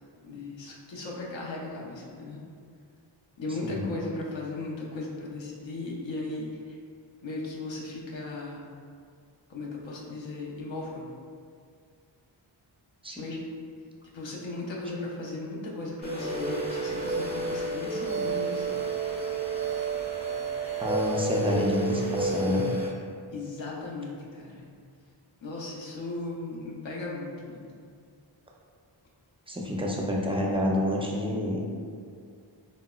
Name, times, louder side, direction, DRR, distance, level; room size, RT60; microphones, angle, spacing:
voice 1, 0.2-2.4 3.4-6.8 7.2-8.7 9.5-11.0 13.2-13.4 14.1-18.8 23.3-24.7 25.4-27.7, left 2 dB, 70° left, -3 dB, 0.6 m, -37 dB
sound 1, 16.0-22.9, right 3 dB, 15° left, 0.7 m, -30 dB
voice 2, 20.8-22.7 29.5-31.7, left 1 dB, 15° right, -2 dB, 0.3 m, -28 dB
3.9 x 2.0 x 2.2 m, 2.2 s
wide cardioid pair, 70°, 47 cm